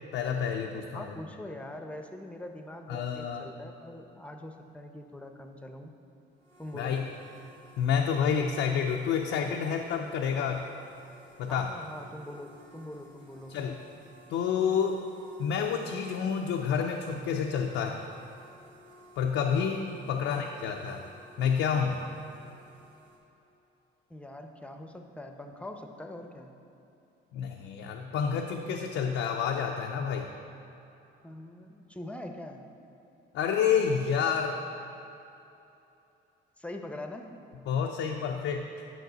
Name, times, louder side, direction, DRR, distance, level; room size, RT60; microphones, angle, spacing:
voice 1, 0.1-1.2 2.9-3.5 6.7-7.1 7.8-10.7 11.4-11.7 13.5-13.8 14.3-15.0 15.4-18.0 19.2-21.0 21.4-22.0 27.3-30.3 33.3-34.6 37.7-38.7, left 7 dB, 85° left, 2 dB, 0.5 m, -29 dB
voice 2, 0.9-5.9 6.6-7.0 11.5-13.6 20.0-20.5 24.1-26.5 31.2-32.7 36.6-37.3, left 1 dB, 5° left, 5 dB, 0.6 m, -43 dB
sound 1, 6.3-23.2, left 1 dB, 80° right, 1.5 m, -56 dB
9.1 x 5.7 x 4.0 m, 2.9 s
cardioid pair, 90°, 20 cm